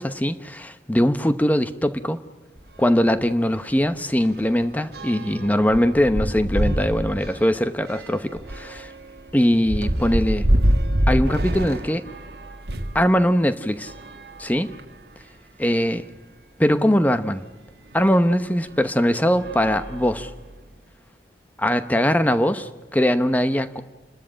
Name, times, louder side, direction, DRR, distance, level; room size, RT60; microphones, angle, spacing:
voice 1, 0.0-2.2 2.8-8.9 9.3-10.5 11.1-12.0 12.9-13.9 14.4-14.7 15.6-16.0 16.6-17.4 17.9-20.3 21.6-23.8, equal, 10° left, 10 dB, 0.9 m, -21 dB
sound 1, 2.6-2.7 3.1-3.2 3.6-13.0 13.8-15.1 15.8-15.9 16.1-16.2 17.9-18.1 18.7-18.9 19.3-20.6, right 1 dB, 65° right, 1.5 m, -26 dB
30.0 x 13.0 x 8.8 m, 1.2 s
head